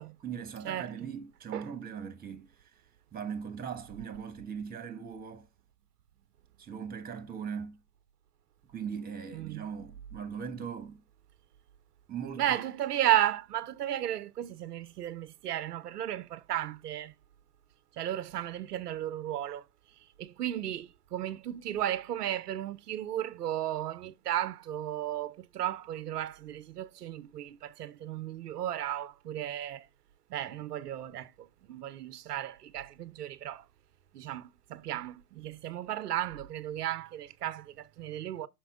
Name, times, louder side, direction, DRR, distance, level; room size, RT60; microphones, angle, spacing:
voice 1, 0.0-2.7 3.1-5.5 6.6-7.8 8.7-11.0 12.1-12.6, right 7 dB, 20° right, 1.2 m, -40 dB
voice 2, 9.3-9.7 12.4-17.1 18.0-19.7 20.2-29.9 30.3-33.7 34.1-38.5, right 12 dB, 90° right, 0.6 m, -34 dB
5.9 x 4.3 x 4.8 m
hypercardioid pair, 100°, 45 cm